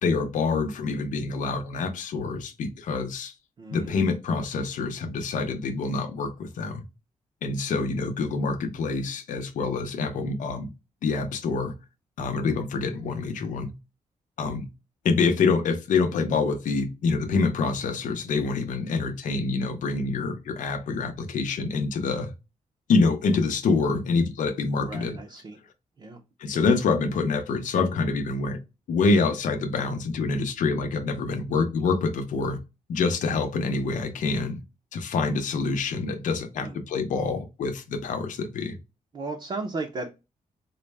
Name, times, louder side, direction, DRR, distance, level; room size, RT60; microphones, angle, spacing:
voice 1, 0.0-3.3 3.7-6.8 7.4-10.7 11.0-11.7 12.2-13.7 14.4-14.7 15.0-22.3 22.9-25.2 26.4-28.6 28.9-32.6 32.9-34.6 34.9-38.8, left 4 dB, 75° left, 0.6 m, -26 dB
voice 2, 3.6-4.0 24.8-25.6 26.0-26.2 36.6-36.8 39.1-40.1, right 3 dB, 40° right, 0.6 m, -35 dB
4.0 x 2.1 x 3.3 m
wide cardioid pair, 125°, 13 cm